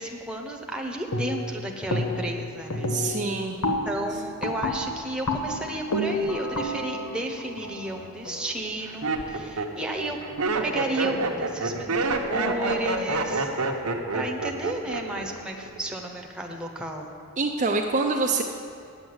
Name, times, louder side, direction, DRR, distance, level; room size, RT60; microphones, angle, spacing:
voice 1, 0.0-3.0 3.8-10.2 10.6-13.5 14.1-17.1, right 1 dB, 5° right, 1 dB, 0.9 m, -33 dB
sound 1, 1.1-1.6 1.9-2.4 2.7-8.5, left 1 dB, 90° left, 1.1 m, -30 dB
voice 2, 2.9-3.6 17.4-18.4, right 3 dB, 35° right, 2 dB, 0.5 m, -25 dB
Laughter, 7.6-8.0 8.6-15.3 15.5-16.0, right 3 dB, 80° right, 1.0 m, -27 dB
9.2 x 7.8 x 7.9 m, 2.4 s
head